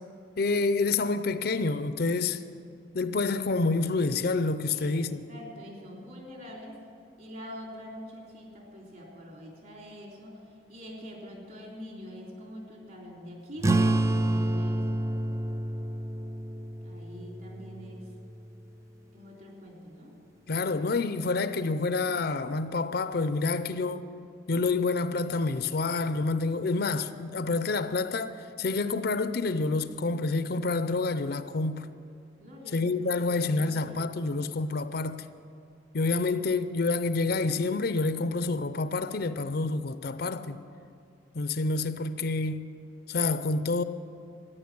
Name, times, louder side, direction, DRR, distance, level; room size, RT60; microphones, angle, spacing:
voice 1, 0.4-2.4 2.9-5.2 20.5-24.1 24.5-31.9 32.7-35.2 35.9-40.6 41.3-42.7 43.1-43.8, left 3 dB, 55° left, 0.5 m, -28 dB
voice 2, 5.3-6.7 7.2-10.4 10.7-14.8 16.8-18.0 19.1-20.1 32.4-34.0, equal, 50° right, 3.6 m, -45 dB
sound 1, 13.6-18.7, right 2 dB, 15° right, 0.4 m, -29 dB
14.0 x 9.9 x 8.6 m
head